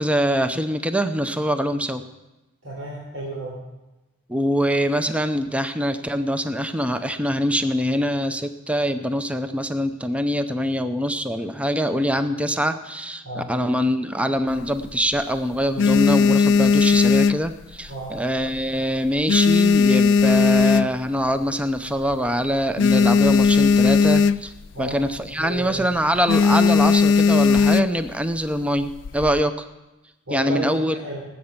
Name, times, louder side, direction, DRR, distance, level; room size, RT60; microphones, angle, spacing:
voice 1, 0.0-2.0 4.3-24.5 24.8-29.5 30.3-30.9, equal, 5° right, 9 dB, 0.6 m, -24 dB
voice 2, 2.6-3.5 13.2-13.5 17.9-18.1 24.7-25.0 25.4-25.9 30.3-31.2, right 1 dB, 80° right, -5 dB, 3.9 m, -32 dB
sound 1, 14.5-15.2 15.6-18.1 18.4-18.8 19.0-21.3 21.8-21.9 22.0-22.2 22.5-24.7 25.0-25.2 25.6-25.8 26.3-28.1 28.8-29.4, left 5 dB, 65° left, 0.4 m, -17 dB
19.5 x 8.6 x 5.9 m, 1.0 s
head